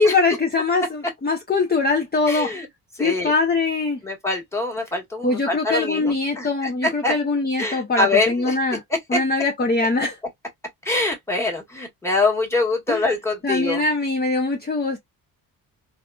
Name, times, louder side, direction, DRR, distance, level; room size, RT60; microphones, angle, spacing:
voice 1, 0.0-2.6 3.0-4.0 5.2-8.8 9.1-10.2 12.9-13.1 13.4-15.0, left 3 dB, 25° left, 0.6 m, -22 dB
voice 2, 2.3-2.7 3.0-3.3 4.0-7.2 7.6-8.6 9.1-9.2 10.8-13.8, left 2 dB, 5° left, 1.4 m, -24 dB
3.4 x 2.4 x 2.3 m
supercardioid pair, 60°, 40 cm